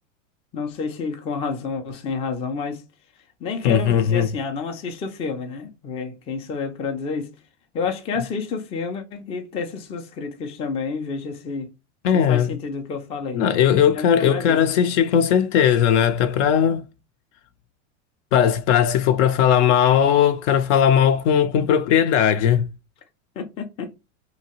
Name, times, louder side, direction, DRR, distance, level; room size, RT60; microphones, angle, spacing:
voice 1, 0.5-2.8 3.4-7.3 7.7-11.7 12.1-13.4 13.9-14.6 23.4-23.9, left 5 dB, 15° left, 0.3 m, -29 dB
voice 2, 3.6-4.3 12.0-12.5 13.3-16.9 18.3-22.7, left 9 dB, 70° left, 0.6 m, -18 dB
2.8 x 2.2 x 2.8 m
supercardioid pair, 125°, 38 cm